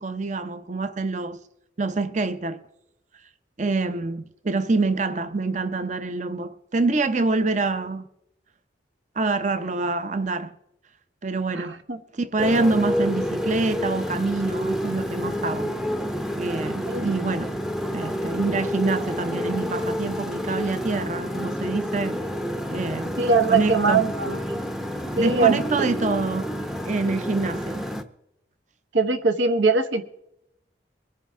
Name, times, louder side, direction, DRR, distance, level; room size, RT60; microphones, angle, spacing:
voice 1, 0.0-1.4 1.8-2.6 3.6-8.1 9.2-10.5 11.2-11.8 12.1-15.7 16.4-17.5 17.9-22.2 22.7-23.2 23.5-24.1 25.2-26.5 26.8-27.8, right 3 dB, 40° right, 0.7 m, -26 dB
voice 2, 11.5-12.0 16.9-17.1 23.2-24.6 25.2-25.6 28.9-30.0, right 4 dB, 75° right, 1.1 m, -22 dB
Motorcycle, 12.4-28.0, equal, ahead, 0.6 m, -29 dB
23.0 x 9.8 x 3.6 m
head